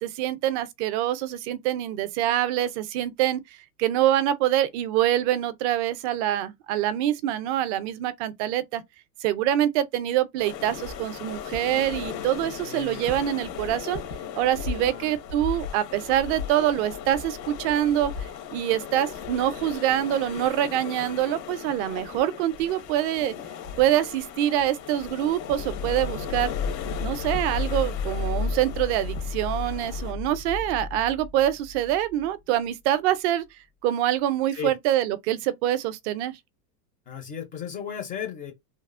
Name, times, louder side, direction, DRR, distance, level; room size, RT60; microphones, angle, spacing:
voice 1, 0.0-3.4 3.8-8.8 9.2-14.0 14.4-23.3 23.8-26.5 27.0-33.5 33.8-36.4, right 12 dB, 45° right, 0.5 m, -25 dB
sound 1, 10.4-30.1, left 7 dB, 90° left, 1.3 m, -37 dB
voice 2, 12.6-13.0 14.8-15.2 34.5-34.7 37.1-38.5, left 8 dB, 20° left, 0.4 m, -35 dB
sound 2, 25.5-32.3, left 4 dB, 60° left, 0.6 m, -32 dB
3.0 x 2.0 x 2.4 m
supercardioid pair, 140°, 49 cm